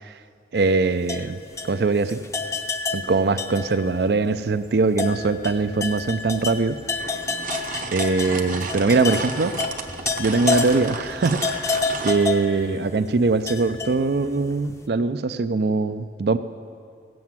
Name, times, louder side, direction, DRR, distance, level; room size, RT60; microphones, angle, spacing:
sound 1, 0.5-4.0 4.3-4.4 4.9-14.5, left 4 dB, 15° left, 0.5 m, -29 dB
voice 1, 0.5-1.4 1.6-2.2 2.9-6.8 7.9-9.6 10.2-11.7 12.0-16.4, right 3 dB, 65° right, 12 dB, 0.4 m, -22 dB
sound 2, 7.0-12.2, right 4 dB, 50° right, 0.8 m, -33 dB
17.0 x 7.8 x 7.3 m, 2.2 s
head